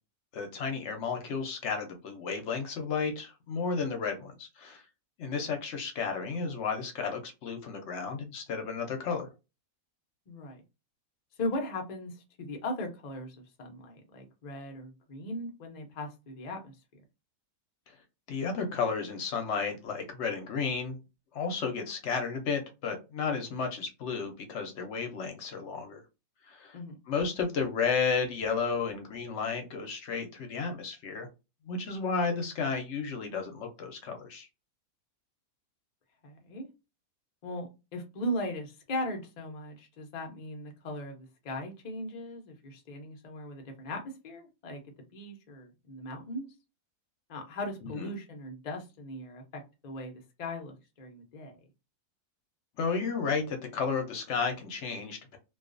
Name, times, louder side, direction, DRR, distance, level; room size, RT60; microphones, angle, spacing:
voice 1, 0.3-4.8 5.2-9.3 18.3-21.0 21.3-26.0 26.5-26.8 27.1-31.3 31.7-34.5 47.8-48.1 52.8-55.4, left 5 dB, 65° left, 0.7 m, -32 dB
voice 2, 10.3-10.6 11.4-16.8 26.7-27.0 36.2-36.7 37.4-44.8 45.1-46.5 47.3-51.6, left 1 dB, 80° left, 0.3 m, -38 dB
2.4 x 2.3 x 2.4 m
omnidirectional pair, 1.6 m